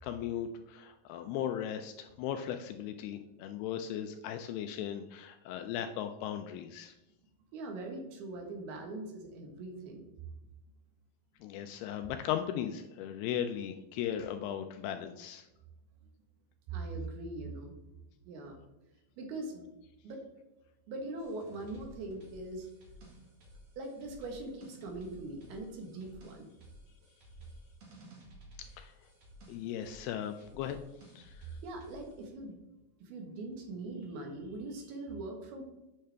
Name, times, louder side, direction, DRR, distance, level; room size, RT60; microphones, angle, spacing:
voice 1, 0.0-6.9 11.4-15.5 28.8-28.9 29.5-30.8 31.2-31.5, left 10 dB, 85° left, 7 dB, 2.4 m, -37 dB
voice 2, 7.5-10.1 16.7-17.8 18.3-18.6 19.2-19.7 20.0-20.2 20.9-22.7 23.8-26.5 31.6-32.6 33.0-35.6, right 2 dB, 70° right, 3 dB, 3.0 m, -41 dB
sound 1, 21.2-32.3, equal, 55° right, 1.7 m, -55 dB
8.8 x 6.5 x 3.3 m, 1.0 s
omnidirectional pair, 4.9 m